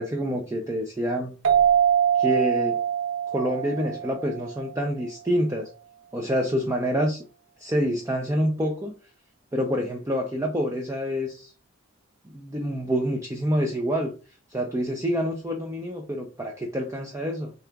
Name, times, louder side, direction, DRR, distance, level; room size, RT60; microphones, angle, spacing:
voice 1, 0.0-1.4 2.2-2.8 3.3-5.7 6.1-7.2 7.6-8.9 9.5-11.5 12.2-14.1 14.5-17.5, equal, 15° right, 2 dB, 0.5 m, -27 dB
sound 1, 1.4-4.7, right 9 dB, 75° right, 0.7 m, -23 dB
6.8 x 2.9 x 2.4 m, 0.34 s
head